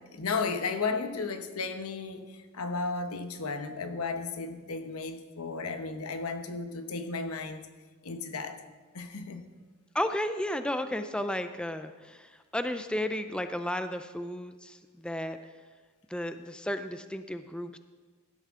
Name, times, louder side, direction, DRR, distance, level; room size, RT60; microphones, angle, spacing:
voice 1, 0.1-7.7 8.0-8.6 8.9-9.4, left 4 dB, 80° left, 8 dB, 1.0 m, -34 dB
voice 2, 9.9-15.4 16.1-17.8, left 1 dB, 5° left, 9 dB, 0.4 m, -33 dB
16.5 x 12.0 x 3.7 m, 1.4 s
head